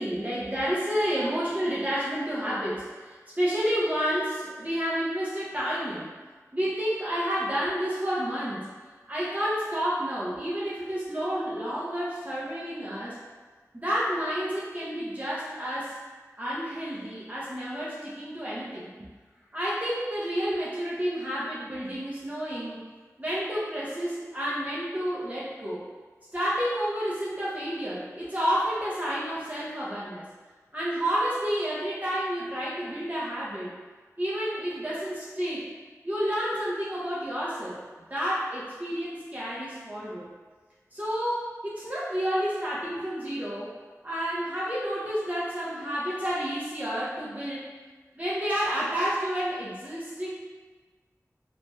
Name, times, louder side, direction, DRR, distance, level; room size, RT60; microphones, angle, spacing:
voice 1, 0.0-6.1 6.5-8.7 9.1-13.2 13.7-15.9 16.4-18.9 19.5-22.8 23.2-25.8 26.3-30.2 30.7-33.7 34.2-35.6 36.0-37.8 38.1-40.3 40.9-43.7 44.0-47.6 48.1-50.3, equal, 25° right, -9 dB, 0.6 m, -30 dB
3.0 x 2.8 x 2.2 m, 1.4 s
wide cardioid pair, 40°, 6 cm